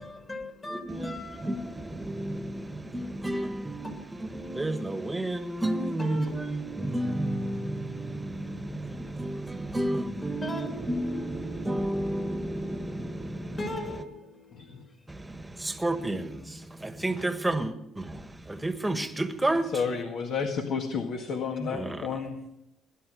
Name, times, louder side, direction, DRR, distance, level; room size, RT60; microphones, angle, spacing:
voice 1, 0.0-2.8 3.8-4.3 6.0-6.4 8.9-9.0 9.4-9.5 10.4-14.9, left 1 dB, 25° left, 3.2 m, -41 dB
voice 2, 0.7-13.6 15.1-19.7 21.6-22.1, right 1 dB, 10° right, 1.5 m, -31 dB
voice 3, 14.5-14.8 19.7-22.4, left 5 dB, 60° left, 1.9 m, -31 dB
19.5 x 11.5 x 6.4 m
cardioid pair, 110°, 0 cm